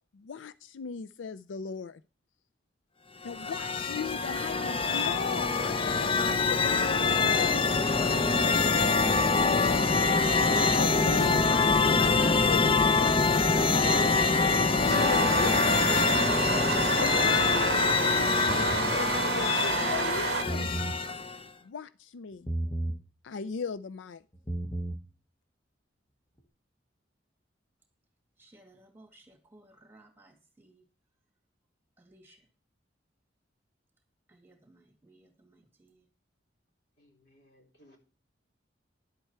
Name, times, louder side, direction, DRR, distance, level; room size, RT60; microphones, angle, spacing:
voice 1, 0.1-2.0 3.2-7.0 7.2-9.9 10.7-14.1 14.9-16.0 17.0-20.9 21.6-22.5 23.2-24.2, left 6 dB, 85° left, 15 dB, 0.4 m, -38 dB
sound 1, 3.2-21.4, left 4 dB, 30° left, 0.5 m, -25 dB
sound 2, 14.9-20.4, right 5 dB, 60° right, 0.7 m, -30 dB
sound 3, 18.5-19.0 20.3-21.0 22.5-23.0 24.3-25.0, right 1 dB, 10° left, 0.9 m, -33 dB
voice 2, 28.4-30.8 32.0-32.4 34.3-36.0, right 1 dB, 10° right, 4 dB, 2.3 m, -59 dB
voice 3, 37.0-38.0, left 1 dB, 60° left, 1 dB, 3.8 m, -61 dB
11.0 x 8.0 x 4.4 m, 0.36 s
head